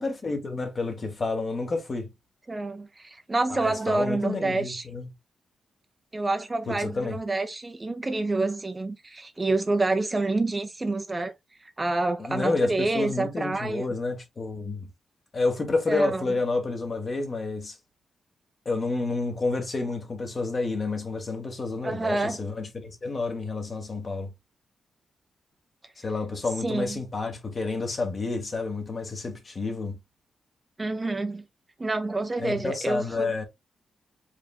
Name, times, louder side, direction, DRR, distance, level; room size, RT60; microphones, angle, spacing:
voice 1, 0.0-2.1 3.5-5.1 6.7-7.2 12.2-14.9 15.3-17.8 18.6-24.3 26.0-30.0 32.4-33.4, left 3 dB, 40° left, 1.4 m, -29 dB
voice 2, 2.5-4.8 6.1-11.3 11.6-13.9 15.9-16.2 21.8-22.4 26.6-27.0 30.8-31.4 31.8-33.3, right 2 dB, 25° right, 0.6 m, -28 dB
4.8 x 3.5 x 2.4 m
cardioid pair, 105°, 0 cm